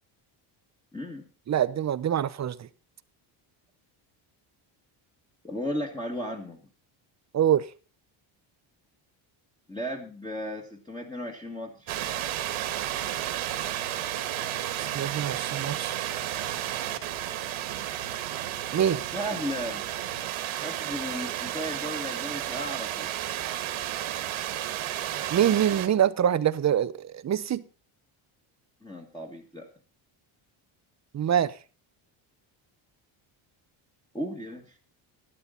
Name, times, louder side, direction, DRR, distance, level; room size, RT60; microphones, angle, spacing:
voice 1, 0.9-1.3 5.4-6.6 9.7-12.0 19.1-19.9 20.5-23.1 28.8-29.7 34.1-34.8, equal, 10° left, 1.8 m, -35 dB
voice 2, 1.5-2.7 7.3-7.7 14.8-16.0 18.7-19.0 25.3-27.6 31.1-31.5, right 10 dB, 35° right, 0.7 m, -25 dB
sound 1, 11.9-25.9, right 12 dB, 75° right, 1.9 m, -32 dB
12.0 x 12.0 x 3.9 m
cardioid pair, 120°, 50 cm